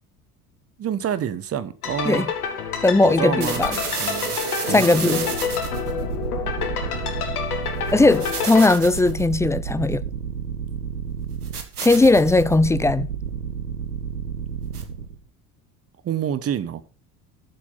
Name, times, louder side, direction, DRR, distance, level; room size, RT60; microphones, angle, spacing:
voice 1, 0.8-2.3 3.0-3.6 4.0-4.4 4.7-5.3 16.0-16.8, right 9 dB, 30° right, 1.0 m, -27 dB
sound 1, 1.8-8.7, left 7 dB, 80° left, 2.2 m, -28 dB
voice 2, 2.8-3.8 4.7-5.2 7.9-10.0 11.8-13.1, left 2 dB, 5° left, 0.4 m, -18 dB
sound 2, 3.4-15.2, right 7 dB, 85° right, 1.6 m, -30 dB
12.0 x 7.4 x 5.5 m
figure-of-eight pair, 60°, 44 cm